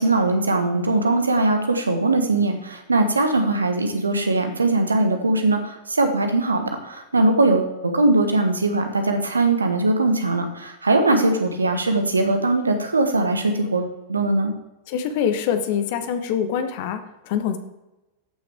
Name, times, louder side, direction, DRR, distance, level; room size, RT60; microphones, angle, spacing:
voice 1, 0.0-14.5, right 2 dB, 75° right, 6 dB, 1.3 m, -21 dB
voice 2, 14.9-17.6, left 8 dB, 50° left, 9 dB, 1.1 m, -24 dB
13.5 x 6.1 x 3.6 m, 0.97 s
figure-of-eight pair, 90°, 0 cm